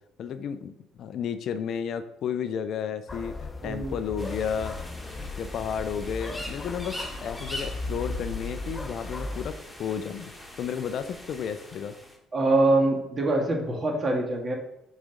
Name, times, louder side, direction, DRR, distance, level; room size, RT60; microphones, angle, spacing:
voice 1, 0.2-4.8 5.2-10.3 10.6-11.9, left 7 dB, 60° left, 11 dB, 0.5 m, -32 dB
sound 1, 3.1-9.5, left 2 dB, 30° left, 0.9 m, -37 dB
voice 2, 3.6-3.9 12.3-14.6, right 2 dB, 40° right, 1 dB, 1.9 m, -24 dB
sound 2, 4.2-12.2, left 2 dB, 10° left, 1.7 m, -41 dB
6.1 x 4.1 x 5.0 m, 0.84 s
hypercardioid pair, 60°, 0 cm